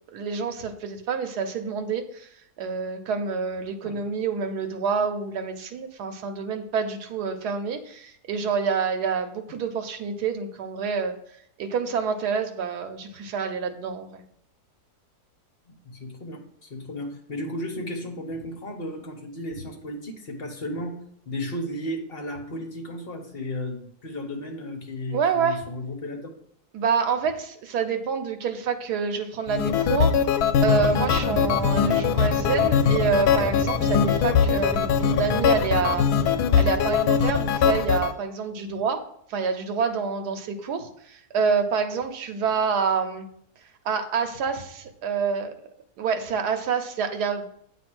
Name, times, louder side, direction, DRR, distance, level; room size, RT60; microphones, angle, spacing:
voice 1, 0.1-2.3 2.6-11.2 11.6-14.2 25.1-25.6 26.7-30.1 30.6-36.1 36.6-39.0 39.3-43.2 43.8-45.5 46.0-47.5, right 5 dB, 85° right, 5 dB, 1.4 m, -27 dB
voice 2, 15.7-21.0 21.3-26.3, left 1 dB, 40° left, 2 dB, 1.2 m, -34 dB
sound 1, 29.5-38.1, left 7 dB, 85° left, 1.1 m, -22 dB
sound 2, 30.7-37.0, equal, 10° right, 2.5 m, -34 dB
8.6 x 3.1 x 6.1 m, 0.68 s
omnidirectional pair, 1.7 m